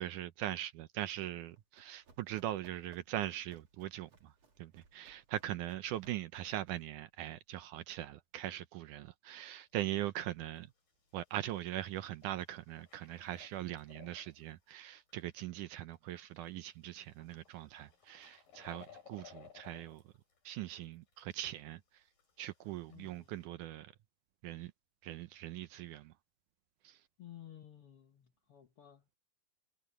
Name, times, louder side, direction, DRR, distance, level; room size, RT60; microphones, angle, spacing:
voice 1, 0.0-4.3 4.6-10.7 11.1-20.0 20.5-22.0 22.4-23.9 24.4-24.7 25.0-26.1 26.8-27.0, right 13 dB, 75° right, 2.0 m, -41 dB
Run, 1.4-7.0, right 4 dB, 45° right, 4.2 m, -66 dB
sound 1, 9.4-9.5 9.8-9.9 10.2-10.3 10.5-15.4 15.8-21.6 21.9-23.5, left 8 dB, 80° left, 9.8 m, -60 dB
voice 2, 22.9-23.3 27.2-29.0, left 11 dB, 55° left, 1.6 m, -54 dB
omnidirectional pair, 4.0 m